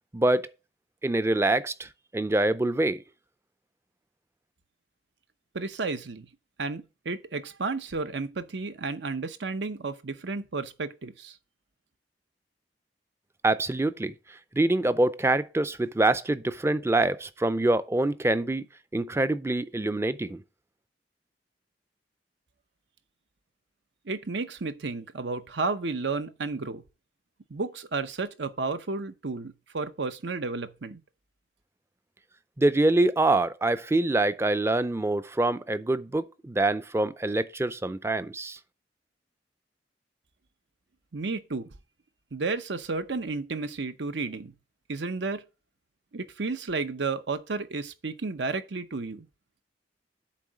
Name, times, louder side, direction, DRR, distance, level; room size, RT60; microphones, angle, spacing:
voice 1, 0.1-0.5 1.0-3.0 13.4-14.1 14.5-18.6 18.9-20.4 32.6-38.6, right 2 dB, 15° right, 0.4 m, -25 dB
voice 2, 5.5-6.3 6.6-11.4 24.1-26.8 27.5-31.0 41.1-41.7 42.3-44.5 44.9-45.4 46.1-49.3, right 3 dB, 80° right, 0.8 m, -32 dB
8.4 x 3.7 x 6.3 m
head